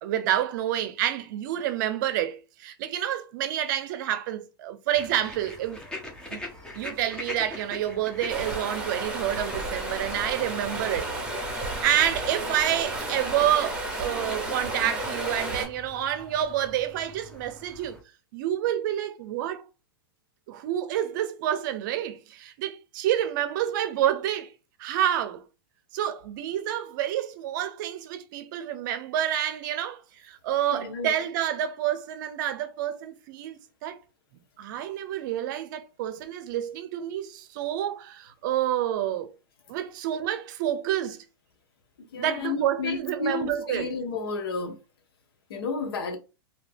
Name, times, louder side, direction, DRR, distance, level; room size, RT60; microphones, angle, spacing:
voice 1, 0.0-5.8 6.3-6.4 6.8-11.1 11.8-18.0 18.3-19.7 20.5-24.5 24.8-25.4 25.9-34.0 34.6-39.3 39.7-41.2 42.1-44.0, right 11 dB, 55° right, 0.6 m, -28 dB
sound 1, 4.9-18.0, left 1 dB, 5° left, 0.8 m, -44 dB
Stream, 8.3-15.7, right 2 dB, 10° right, 1.2 m, -32 dB
voice 2, 30.7-31.1 42.1-44.8 45.5-46.2, left 4 dB, 80° left, 0.8 m, -31 dB
2.8 x 2.6 x 3.4 m
hypercardioid pair, 135°, 12 cm